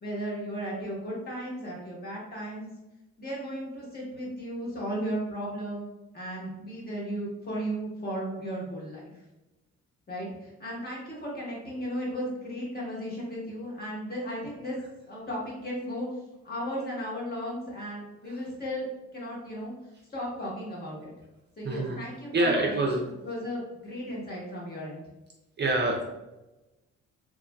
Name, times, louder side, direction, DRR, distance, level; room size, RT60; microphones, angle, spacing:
voice 1, 0.0-2.7 3.2-5.9 6.1-9.0 10.1-16.1 16.4-19.7 20.1-21.1 21.6-23.0 23.2-25.0, equal, 30° left, -4 dB, 1.2 m, -35 dB
voice 2, 21.6-22.0 22.3-23.0 25.6-26.0, right 2 dB, 35° right, 1 dB, 0.5 m, -25 dB
3.1 x 2.4 x 2.3 m, 1.0 s
cardioid pair, 90°, 30 cm